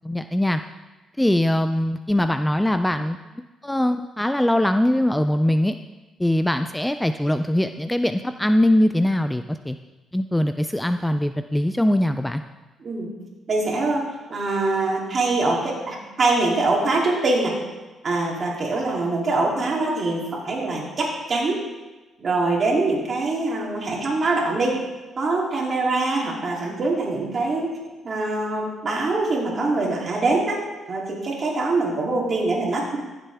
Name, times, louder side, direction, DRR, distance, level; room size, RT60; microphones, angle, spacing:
voice 1, 0.0-0.6 1.2-3.2 3.6-5.8 6.2-9.8 10.1-12.4, left 1 dB, 5° left, 9 dB, 0.4 m, -21 dB
voice 2, 13.5-14.0 14.3-17.5 18.0-21.6 22.2-24.7 25.2-27.7 28.0-30.6 30.9-33.0, right 2 dB, 45° right, -2 dB, 2.9 m, -23 dB
14.5 x 7.6 x 3.5 m, 1.2 s
cardioid pair, 90°, 0 cm